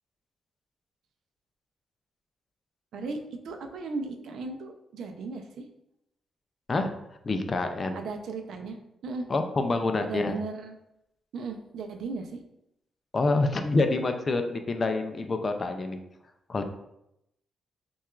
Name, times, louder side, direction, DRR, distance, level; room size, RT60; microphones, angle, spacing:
voice 1, 2.9-5.7 7.9-8.8 9.0-9.3 10.0-10.7 11.3-12.4, right 3 dB, 70° right, 4 dB, 0.5 m, -36 dB
voice 2, 7.2-8.0 9.3-10.3 13.1-16.0 16.5-16.6, left 3 dB, 25° left, 6 dB, 0.3 m, -27 dB
5.7 x 2.3 x 2.3 m, 0.81 s
wide cardioid pair, 170°, 0 cm